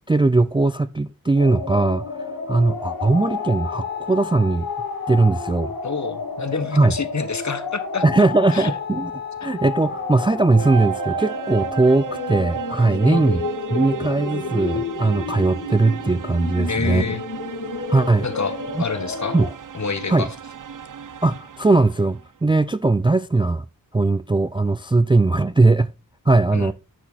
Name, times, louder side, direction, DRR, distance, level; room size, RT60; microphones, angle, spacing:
voice 1, 0.1-4.7 5.1-5.7 6.7-6.9 8.0-9.1 9.4-13.4 13.7-17.1 17.9-18.3 19.3-19.5 20.1-20.3 21.2-23.6 23.9-25.9 26.3-26.7, right 3 dB, 15° right, 0.3 m, -19 dB
sound 1, 1.4-19.5, left 5 dB, 70° left, 1.7 m, -30 dB
voice 2, 5.8-8.0 8.5-8.7 9.4-9.6 13.0-13.5 16.7-17.2 18.2-19.4 19.7-20.3 26.5-26.7, left 4 dB, 50° left, 1.1 m, -28 dB
sound 2, 9.4-22.2, right 11 dB, 60° right, 0.6 m, -35 dB
9.9 x 5.0 x 3.9 m
wide cardioid pair, 80°, 36 cm